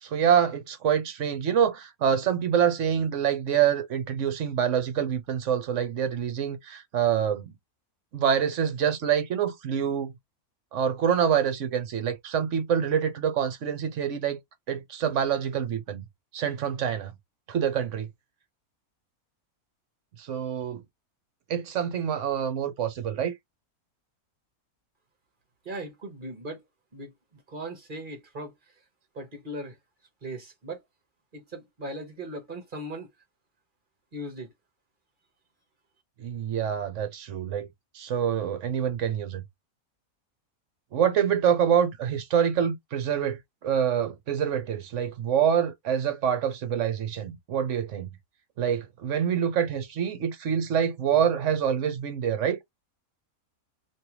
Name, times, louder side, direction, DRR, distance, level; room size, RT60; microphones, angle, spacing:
voice 1, 0.0-7.5 8.1-10.1 10.7-14.4 14.7-16.0 16.3-17.1 17.5-18.1 20.2-20.8 21.5-23.3 36.2-37.7 37.9-39.4 40.9-48.1 48.6-52.6, right 8 dB, 60° right, 1.0 m, -26 dB
voice 2, 25.6-26.6 26.9-28.5 29.1-29.8 30.2-30.8 31.3-33.1 34.1-34.5, right 1 dB, 35° right, 1.2 m, -38 dB
3.2 x 2.7 x 2.8 m
omnidirectional pair, 1.5 m